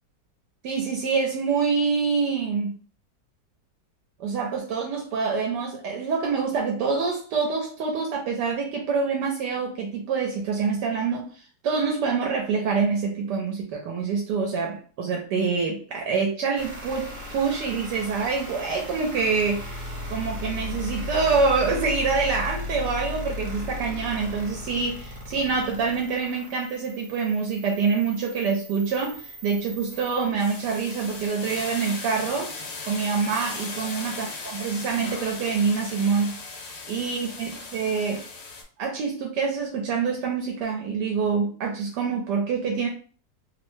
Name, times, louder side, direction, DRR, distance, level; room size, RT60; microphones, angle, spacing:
voice 1, 0.6-2.7 4.2-32.5 32.9-36.3 36.9-38.2 38.8-42.9, right 5 dB, 75° right, 0 dB, 1.2 m, -26 dB
sound 1, 16.5-31.3, left 2 dB, 40° right, 1.1 m, -37 dB
sound 2, 28.9-29.2 29.6-38.6, left 3 dB, 85° left, 1.6 m, -37 dB
3.3 x 2.0 x 3.1 m, 0.41 s
omnidirectional pair, 1.9 m